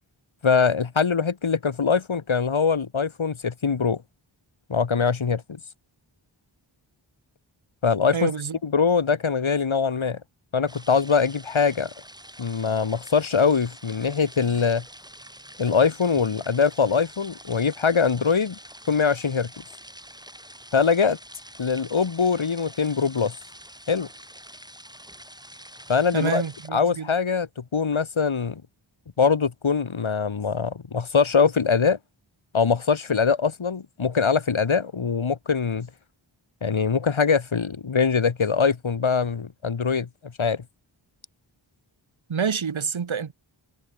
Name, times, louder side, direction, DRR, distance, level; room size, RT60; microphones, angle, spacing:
voice 1, 0.4-4.0 4.7-5.6 7.8-8.3 8.6-10.2 10.5-11.9 12.4-14.8 15.6-18.6 18.9-19.5 20.7-21.2 21.6-23.3 23.9-24.1 25.9-26.4 26.7-28.6 29.2-32.0 32.5-35.9 36.6-40.1 40.4-40.6, left 5 dB, 75° left, 1.7 m, -22 dB
voice 2, 8.1-8.6 26.1-27.1 42.3-43.3, right 6 dB, 75° right, 1.3 m, -27 dB
sound 1, 10.7-26.7, equal, 10° right, 6.0 m, -46 dB
wide cardioid pair, 55°, 48 cm